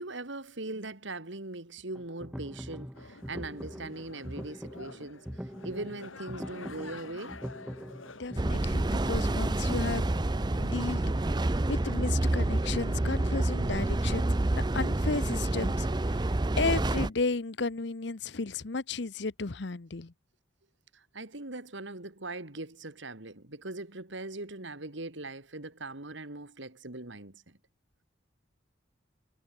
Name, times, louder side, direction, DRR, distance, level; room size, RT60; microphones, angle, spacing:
voice 1, 0.0-7.4 20.9-27.6, right 2 dB, 70° right, 2.5 m, -40 dB
sound 1, 1.9-10.1, equal, 5° right, 4.7 m, -42 dB
sound 2, 2.9-13.4, left 3 dB, 85° left, 3.6 m, -50 dB
voice 2, 8.2-10.1 10.6-20.1, left 3 dB, 60° left, 0.8 m, -34 dB
sound 3, 8.4-17.1, right 2 dB, 20° right, 0.5 m, -28 dB
head